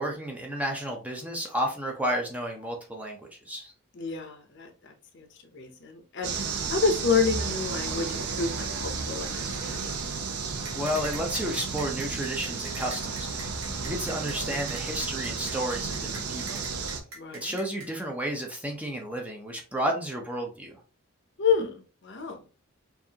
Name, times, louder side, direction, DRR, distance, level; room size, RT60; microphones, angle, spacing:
voice 1, 0.0-3.2 3.5-3.7 10.7-13.5 13.8-16.6 17.3-20.8, equal, 5° right, 1 dB, 0.6 m, -32 dB
voice 2, 3.9-6.3 6.7-9.9 13.7-13.8 17.1-17.6 21.4-22.4, left 5 dB, 55° left, 5 dB, 0.7 m, -29 dB
sound 1, 6.2-17.0, right 5 dB, 90° right, 0.6 m, -33 dB
sound 2, 10.6-17.9, right 3 dB, 70° right, 1.4 m, -43 dB
4.7 x 2.6 x 2.8 m, 0.35 s
head